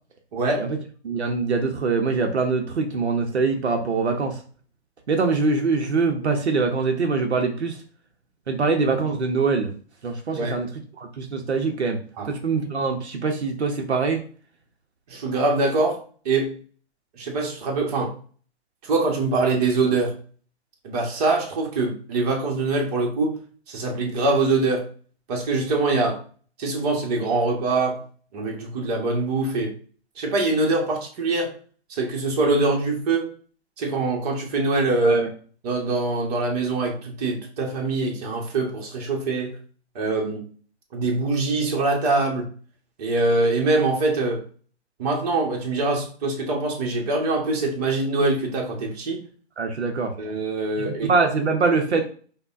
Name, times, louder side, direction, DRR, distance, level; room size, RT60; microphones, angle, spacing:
voice 1, 0.3-0.7 10.4-10.6 12.2-12.3 15.1-16.5 17.2-18.1 18.8-20.1 20.8-23.4 23.7-24.9 25.3-26.2 26.6-28.0 28.3-29.7 30.2-31.6 31.9-33.3 33.8-35.2 35.6-39.6 39.9-40.5 40.9-42.5 43.0-44.4 45.0-49.2 50.2-51.1, right 3 dB, 35° right, 0 dB, 1.0 m, -23 dB
voice 2, 1.0-4.4 5.1-7.8 8.5-9.7 10.0-10.7 11.0-14.2 35.0-35.3 49.6-50.1 50.8-52.0, right 4 dB, 80° right, 4 dB, 0.7 m, -23 dB
5.1 x 2.2 x 2.4 m, 0.43 s
figure-of-eight pair, 130°, 33 cm